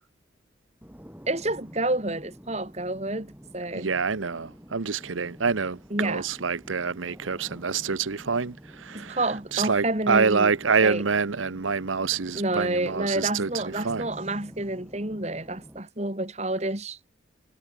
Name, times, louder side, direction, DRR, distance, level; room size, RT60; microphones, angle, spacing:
sound 1, 0.8-15.8, equal, 10° right, 3.2 m, -48 dB
voice 1, 1.3-3.9 5.9-6.3 8.9-10.6 10.8-11.1 12.3-17.0, right 2 dB, 35° right, 3.0 m, -29 dB
voice 2, 3.7-9.2 9.5-13.5 13.8-14.1, right 5 dB, 90° right, 0.9 m, -26 dB
head